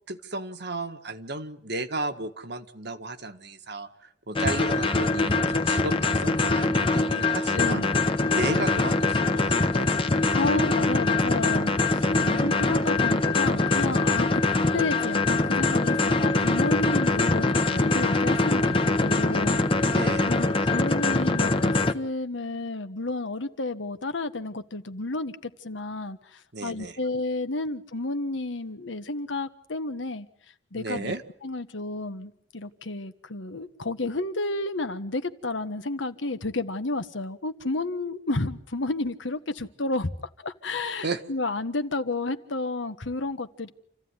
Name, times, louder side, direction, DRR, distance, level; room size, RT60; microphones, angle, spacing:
voice 1, 0.1-7.8 8.3-10.5 12.1-12.6 19.8-20.3 26.5-27.0 30.7-31.2 41.0-41.2, right 2 dB, 60° right, 7 dB, 1.7 m, -34 dB
sound 1, 4.4-21.9, left 3 dB, 30° left, 1.2 m, -23 dB
voice 2, 7.5-7.9 10.3-12.1 12.4-14.4 14.7-19.9 20.2-30.3 30.7-31.1 31.4-40.1 40.4-43.7, left 2 dB, 80° left, 9 dB, 1.5 m, -31 dB
28.0 x 15.5 x 9.8 m, 0.66 s
head